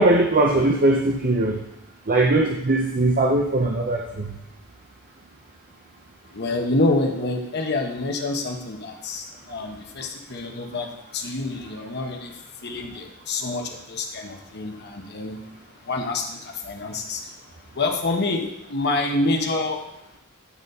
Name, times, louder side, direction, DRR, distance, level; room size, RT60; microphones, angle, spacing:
voice 1, 0.0-1.6 2.1-4.3, right 2 dB, 40° right, 1 dB, 0.7 m, -20 dB
voice 2, 6.3-15.5 15.8-17.4 17.7-19.9, left 2 dB, 50° left, 3 dB, 1.1 m, -27 dB
9.8 x 4.1 x 5.4 m, 0.83 s
head